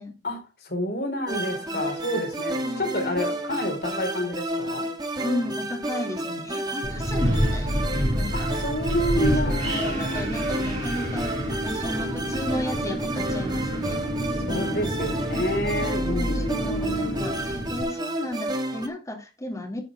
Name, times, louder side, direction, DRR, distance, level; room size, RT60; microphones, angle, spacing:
voice 1, 0.2-4.9 8.3-10.2 14.5-17.4, equal, 60° left, 3 dB, 4.3 m, -29 dB
sound 1, 1.3-18.9, right 1 dB, 25° right, 1.4 m, -31 dB
voice 2, 5.2-7.8 8.1-8.5 9.4-14.0 14.5-14.6 16.1-19.8, left 1 dB, 20° left, 1 dB, 3.0 m, -34 dB
Wind, 6.8-17.8, equal, 45° right, 6.5 m, -28 dB
11.0 x 7.9 x 3.7 m, 0.26 s
head